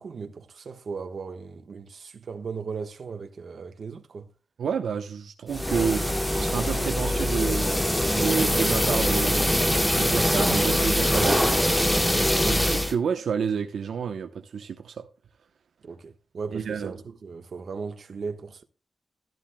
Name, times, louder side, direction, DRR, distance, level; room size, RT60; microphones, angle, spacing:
voice 1, 0.0-4.3 11.1-11.4 15.8-18.6, right 5 dB, 55° right, 1.2 m, -37 dB
voice 2, 4.6-7.7 8.1-9.7 9.9-11.4 12.4-15.1 16.5-17.0, right 7 dB, 80° right, 0.8 m, -29 dB
sound 1, 5.5-12.9, left 1 dB, 10° left, 1.1 m, -23 dB
13.5 x 10.5 x 2.2 m
wide cardioid pair, 140°, 0 cm